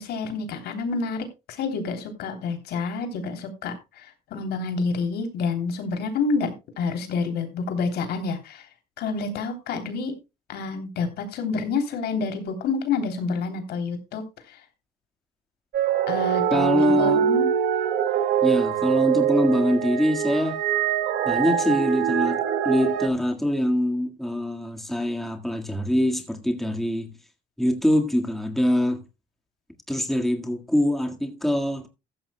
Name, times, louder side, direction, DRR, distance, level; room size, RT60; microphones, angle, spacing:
voice 1, 0.0-8.7 9.0-10.2 10.5-14.6 16.1-17.5, left 4 dB, 70° left, 3.2 m, -28 dB
sound 1, 15.7-23.1, right 9 dB, 75° right, 2.0 m, -23 dB
voice 2, 16.5-17.2 18.4-20.6 21.3-22.4 22.6-27.1 27.6-29.0 29.9-31.9, left 1 dB, ahead, 1.7 m, -24 dB
15.0 x 13.0 x 2.2 m
cardioid pair, 110°, 17 cm